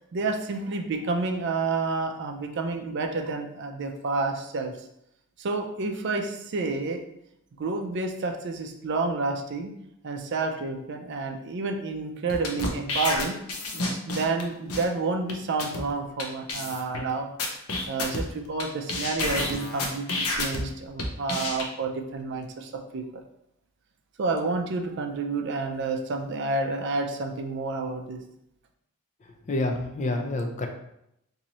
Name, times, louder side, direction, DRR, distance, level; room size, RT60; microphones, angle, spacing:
voice 1, 0.1-4.7 5.4-7.0 7.6-9.7 10.0-13.4 13.7-17.3 17.9-23.2 24.2-28.2, right 3 dB, 55° right, 4 dB, 0.4 m, -29 dB
sound 1, 12.3-14.4 14.7-14.8 15.3-15.4 15.6-15.8 16.2-16.3 16.5-17.0 17.4-18.6 18.9-20.6 21.0-21.6, left 2 dB, 90° left, 0.7 m, -29 dB
voice 2, 29.5-30.7, left 2 dB, 35° left, 4 dB, 0.4 m, -28 dB
2.9 x 2.7 x 4.0 m, 0.80 s
head